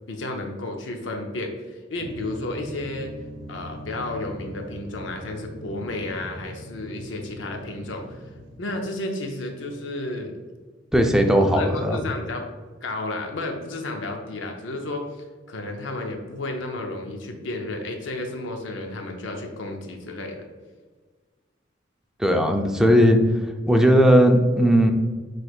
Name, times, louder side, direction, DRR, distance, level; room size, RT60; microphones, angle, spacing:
voice 1, 0.1-3.1 3.5-8.2 8.6-10.3 11.2-12.5 12.8-15.1 15.5-20.4, left 2 dB, 80° left, 3 dB, 0.6 m, -32 dB
sound 1, 2.0-8.6, equal, 75° right, 0.7 m, -41 dB
voice 2, 10.9-12.0 22.2-24.9, equal, 5° right, 3 dB, 0.4 m, -18 dB
6.0 x 3.2 x 2.3 m, 1.4 s
head